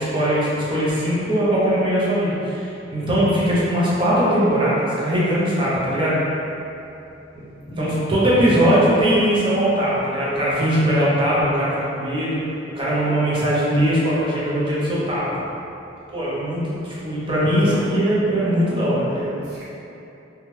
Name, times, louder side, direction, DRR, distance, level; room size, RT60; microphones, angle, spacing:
voice 1, 0.0-6.2 7.4-7.5 7.8-12.4 12.7-15.4 16.1-19.3, equal, 30° right, -8 dB, 0.7 m, -20 dB
voice 2, 8.3-8.7 17.2-17.3 17.6-17.8 19.4-19.6, equal, 65° right, -10 dB, 0.9 m, -32 dB
2.8 x 2.3 x 3.1 m, 2.8 s
head